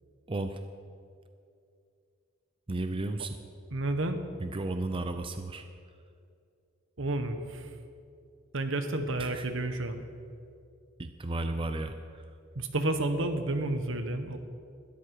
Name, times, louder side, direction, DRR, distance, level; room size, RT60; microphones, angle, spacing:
voice 1, 0.3-0.6 2.7-3.4 4.4-5.7 9.2-9.5 11.0-12.2, right 2 dB, 25° right, 8 dB, 0.6 m, -34 dB
voice 2, 3.7-4.2 7.0-7.7 8.5-10.0 12.5-14.4, right 2 dB, 70° right, 8 dB, 1.4 m, -30 dB
21.0 x 13.0 x 4.8 m, 2.4 s
head